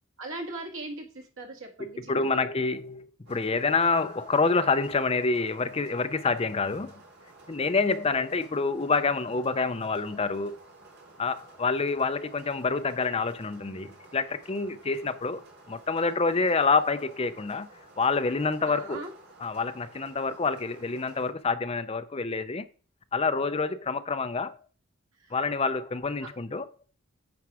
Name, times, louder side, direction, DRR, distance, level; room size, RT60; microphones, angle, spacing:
voice 1, 0.2-2.4 18.7-19.1 25.2-25.3 26.2-26.3, right 2 dB, 80° right, 2.0 m, -39 dB
voice 2, 1.8-7.0 7.5-10.6 11.2-15.4 15.7-17.7 18.0-19.1 19.4-22.7 23.1-24.6 25.3-26.7, left 4 dB, 30° left, 0.6 m, -27 dB
sound 1, 3.3-21.3, right 2 dB, 55° right, 2.4 m, -53 dB
9.6 x 4.6 x 4.9 m
head